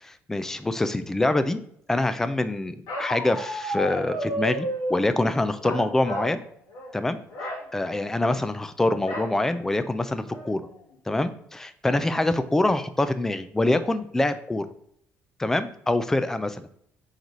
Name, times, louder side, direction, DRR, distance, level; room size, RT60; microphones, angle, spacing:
voice 1, 0.0-1.6 1.9-6.4 6.9-7.2 7.7-10.6 11.1-14.7 15.4-16.7, left 2 dB, 10° left, 11 dB, 0.4 m, -25 dB
Bark, 2.9-5.0 5.6-6.4 6.7-6.9 7.3-7.6 9.1-9.3 9.9-10.0 10.3-10.7, equal, 80° left, 2.0 m, -31 dB
4.6 x 4.0 x 5.2 m, 0.70 s
cardioid pair, 150°, 5 cm